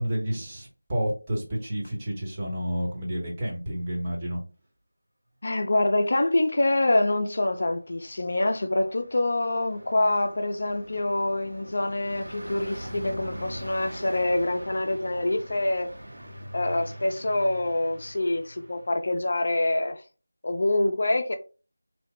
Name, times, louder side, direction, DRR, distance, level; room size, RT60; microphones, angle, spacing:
voice 1, 0.0-4.4, equal, 20° right, 0.8 m, -30 dB
voice 2, 5.4-15.9 16.5-20.0 20.4-21.4, left 2 dB, 50° left, 0.3 m, -25 dB
Car passing by, 8.0-19.0, equal, 70° right, 1.2 m, -42 dB
2.8 x 2.0 x 3.1 m
figure-of-eight pair, 170°, 0 cm